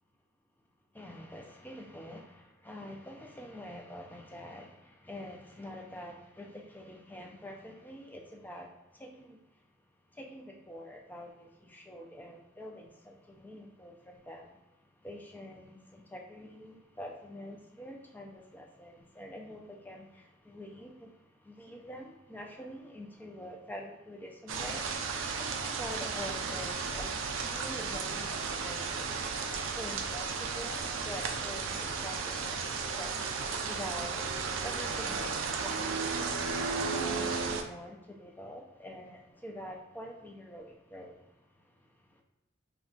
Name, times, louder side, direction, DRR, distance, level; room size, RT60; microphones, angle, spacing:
voice 1, 0.9-9.4 10.1-14.6 15.0-27.2 27.4-29.2 29.7-34.3 34.6-41.3 42.1-42.2, left 1 dB, 10° left, 0 dB, 0.4 m, -46 dB
sound 1, 24.5-37.6, right 5 dB, 70° right, 0.4 m, -34 dB
2.3 x 2.3 x 3.7 m, 0.97 s
head